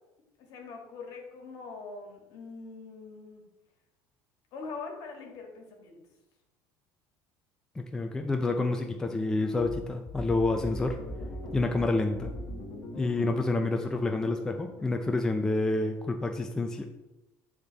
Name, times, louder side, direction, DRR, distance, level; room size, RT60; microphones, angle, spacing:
voice 1, 0.4-3.4 4.5-6.0, left 4 dB, 60° left, 2 dB, 1.7 m, -43 dB
voice 2, 7.8-11.0 11.5-12.3 12.9-16.9, left 2 dB, 10° left, 4 dB, 0.4 m, -28 dB
sound 1, 9.6-15.2, equal, 35° left, 0.9 m, -41 dB
8.9 x 3.6 x 4.0 m, 1.0 s
cardioid pair, 140°, 7 cm